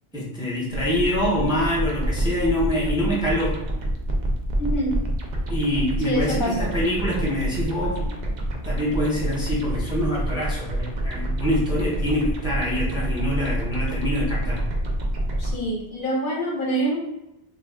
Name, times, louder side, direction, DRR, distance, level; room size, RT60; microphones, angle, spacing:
voice 1, 0.1-3.6 5.5-8.1 8.6-14.7, equal, 5° right, -5 dB, 0.6 m, -25 dB
sound 1, 0.7-15.5, right 1 dB, 55° right, 0.6 m, -27 dB
voice 2, 4.6-5.0 6.0-6.7 15.4-17.0, right 1 dB, 60° left, -2 dB, 0.8 m, -25 dB
2.5 x 2.3 x 3.4 m, 0.89 s
omnidirectional pair, 1.1 m